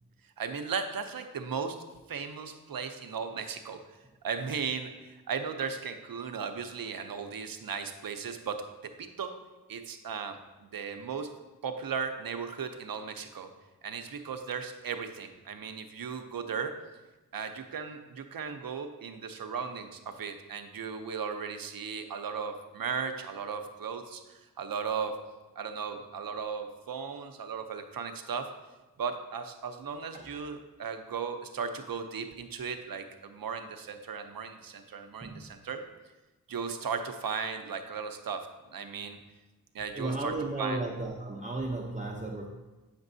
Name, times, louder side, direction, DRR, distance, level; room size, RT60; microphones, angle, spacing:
voice 1, 0.4-1.8 2.1-3.8 4.2-9.4 9.7-11.3 11.6-13.5 13.8-16.8 17.3-25.2 25.6-28.5 29.0-35.8 36.5-38.5 38.7-39.2 39.7-40.8, right 6 dB, 70° right, 7 dB, 0.6 m, -36 dB
voice 2, 35.2-35.5 39.9-42.5, right 2 dB, 20° right, -1 dB, 0.6 m, -34 dB
8.0 x 5.2 x 2.6 m, 1.1 s
cardioid pair, 55°, 36 cm